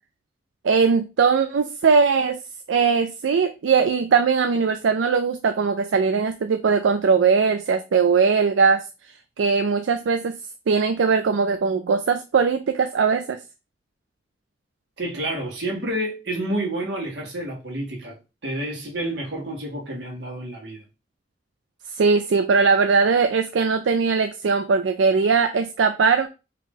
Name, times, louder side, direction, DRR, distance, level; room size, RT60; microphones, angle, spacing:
voice 1, 0.6-2.4 2.7-8.8 9.4-10.4 10.7-13.4 22.0-26.3, right 5 dB, 90° right, 0.4 m, -20 dB
voice 2, 15.0-18.1 18.4-20.8, right 1 dB, 70° right, 1.8 m, -29 dB
4.6 x 2.9 x 3.8 m
head